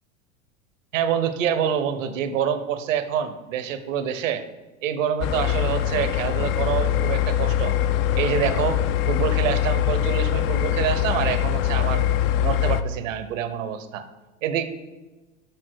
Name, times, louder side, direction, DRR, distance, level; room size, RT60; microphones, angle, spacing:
voice 1, 0.9-4.4 4.8-7.8 8.1-12.0 12.4-14.0 14.4-14.6, right 8 dB, 65° right, 11 dB, 1.0 m, -26 dB
sound 1, 5.2-12.8, left 11 dB, 40° left, 0.5 m, -23 dB
6.8 x 6.0 x 6.2 m, 1.2 s
hypercardioid pair, 85°, 41 cm